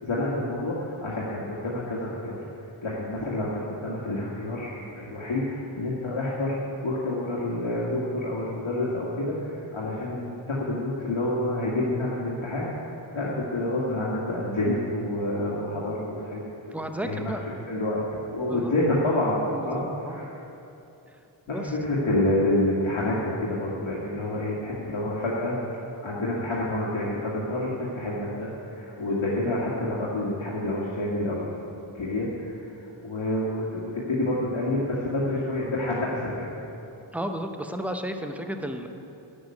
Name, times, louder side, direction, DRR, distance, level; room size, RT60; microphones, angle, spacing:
voice 1, 0.0-12.9 13.1-16.4 16.7-20.4 21.5-25.6 26.0-31.4 31.9-36.5, left 1 dB, 75° left, -6 dB, 1.9 m, -28 dB
voice 2, 16.7-17.5 18.5-18.7 19.5-20.3 21.1-21.2 21.5-21.7 37.1-38.9, equal, 5° right, 5 dB, 0.8 m, -33 dB
11.5 x 6.8 x 9.7 m, 2.9 s
wide cardioid pair, 115°, 48 cm